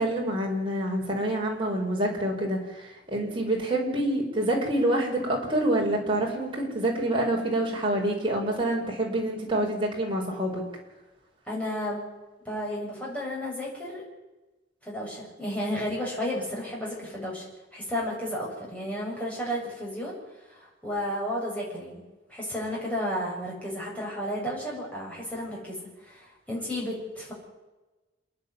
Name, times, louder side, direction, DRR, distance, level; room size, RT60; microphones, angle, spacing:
voice 1, 0.0-10.6, right 1 dB, 25° right, -2 dB, 5.6 m, -27 dB
voice 2, 11.4-12.1 12.4-14.0 14.8-17.4 17.7-20.2 20.5-22.0 22.3-27.3, equal, 5° left, -4 dB, 7.8 m, -32 dB
28.0 x 10.5 x 10.0 m, 1.1 s
head